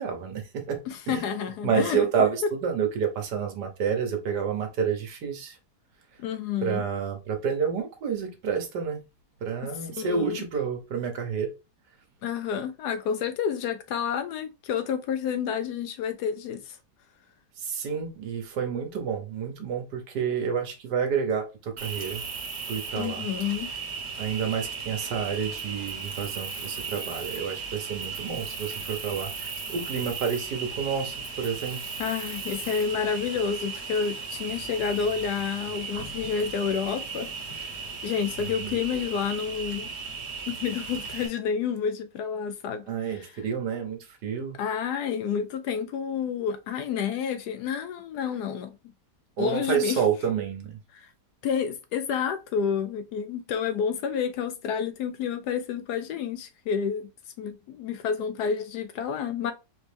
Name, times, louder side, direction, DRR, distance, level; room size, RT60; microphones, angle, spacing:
voice 1, 0.0-0.8 1.1-1.3 1.6-5.6 6.6-9.0 9.4-11.5 17.6-22.2 22.7-23.3 24.2-31.8 38.4-38.8 42.9-44.6 49.4-50.8, right 6 dB, 70° right, 1.5 m, -29 dB
voice 2, 0.9-2.0 6.2-6.8 9.9-10.4 12.2-16.8 22.9-23.7 32.0-37.3 37.5-37.6 38.0-39.9 40.5-43.3 44.6-48.8 49.4-50.0 50.9-51.1 51.4-57.1 57.4-59.5, left 7 dB, 75° left, 1.0 m, -29 dB
Cricket, 21.8-41.3, right 5 dB, 45° right, 1.2 m, -36 dB
4.3 x 3.1 x 3.3 m
omnidirectional pair, 1.9 m